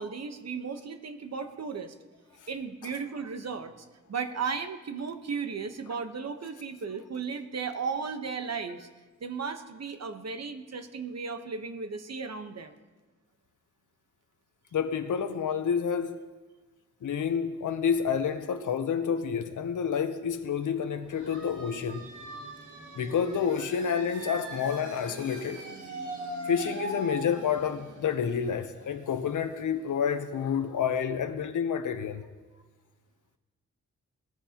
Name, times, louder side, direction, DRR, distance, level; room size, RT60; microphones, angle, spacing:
voice 1, 0.0-1.9 2.5-3.7 4.1-8.9 9.2-12.7, right 5 dB, 60° right, 1.1 m, -35 dB
voice 2, 14.7-16.3 17.0-22.1 22.9-25.6 26.5-32.2, left 7 dB, 85° left, 0.8 m, -29 dB
sound 1, 21.1-30.5, right 1 dB, 80° right, 2.7 m, -41 dB
19.5 x 14.0 x 2.9 m
wide cardioid pair, 85°, 30 cm